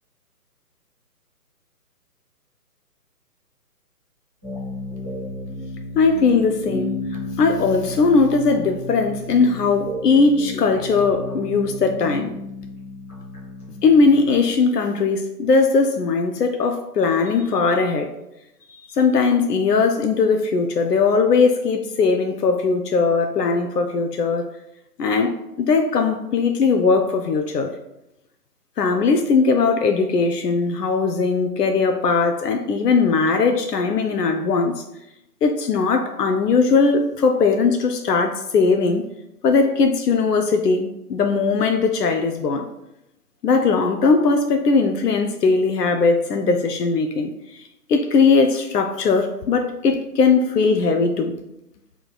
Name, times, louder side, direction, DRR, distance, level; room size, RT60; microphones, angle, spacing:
sound 1, 4.4-14.3, left 1 dB, 10° left, 0.6 m, -33 dB
voice 1, 5.9-6.9 7.4-12.3 13.8-18.1 18.9-24.5 25.0-27.7 28.8-34.8 35.4-39.0 39.4-42.7 43.4-47.6 47.9-51.3, left 4 dB, 85° left, 0.5 m, -19 dB
4.5 x 3.5 x 2.2 m
figure-of-eight pair, 140°, 47 cm